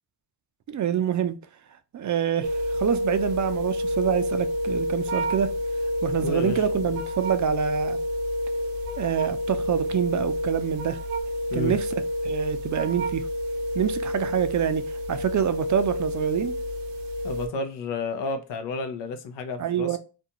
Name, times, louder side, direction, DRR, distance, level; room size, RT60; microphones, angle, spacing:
voice 1, 0.7-1.4 1.9-5.5 6.0-8.0 9.0-11.0 11.5-11.9 12.2-13.3 13.7-14.8 15.1-16.5 19.6-20.0, right 9 dB, 45° right, 0.4 m, -26 dB
sound 1, 2.4-17.5, equal, 80° right, 0.7 m, -29 dB
voice 2, 6.2-6.6 11.5-11.7 17.2-20.0, left 3 dB, 75° left, 0.7 m, -31 dB
2.5 x 2.3 x 2.7 m
cardioid pair, 65°, 42 cm